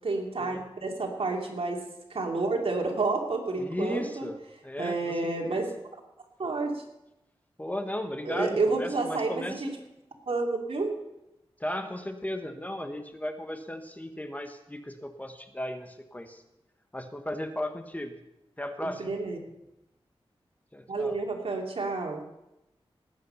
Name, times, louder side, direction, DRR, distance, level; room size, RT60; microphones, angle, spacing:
voice 1, 0.0-1.8 2.1-4.3 4.8-5.7 6.4-6.8 8.2-9.7 10.3-10.9 18.8-19.4 20.9-22.2, right 3 dB, 70° right, 1 dB, 2.9 m, -30 dB
voice 2, 3.6-5.6 7.6-9.6 11.6-16.4 16.9-18.2 18.6-19.1 20.7-21.2, left 1 dB, 15° left, 7 dB, 1.3 m, -36 dB
18.5 x 8.7 x 5.6 m, 0.91 s
wide cardioid pair, 70°, 10 cm